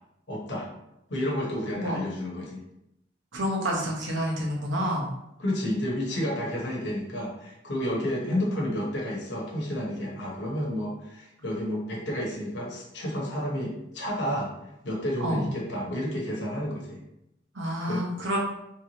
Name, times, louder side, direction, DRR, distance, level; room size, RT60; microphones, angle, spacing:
voice 1, 0.3-0.7 1.1-2.6 5.4-14.5 14.8-17.0 17.8-18.0 18.3-18.4, equal, 75° left, -3 dB, 1.0 m, -31 dB
voice 2, 3.3-5.1 15.2-15.4 17.5-18.4, equal, 90° right, -2 dB, 0.9 m, -28 dB
3.4 x 3.0 x 2.8 m, 0.84 s
head